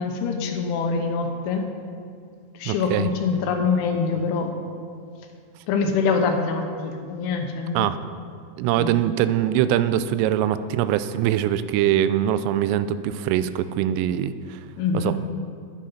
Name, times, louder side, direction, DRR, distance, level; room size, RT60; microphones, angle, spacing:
voice 1, 0.0-1.7 2.6-4.5 5.7-7.9 8.7-9.0 14.8-15.2, left 5 dB, 80° left, 4 dB, 3.2 m, -24 dB
voice 2, 2.7-3.1 7.8-8.0 8.6-14.6 14.9-15.3, right 11 dB, 85° right, 13 dB, 3.1 m, -23 dB
11.5 x 10.0 x 5.7 m, 2.3 s
omnidirectional pair, 5.7 m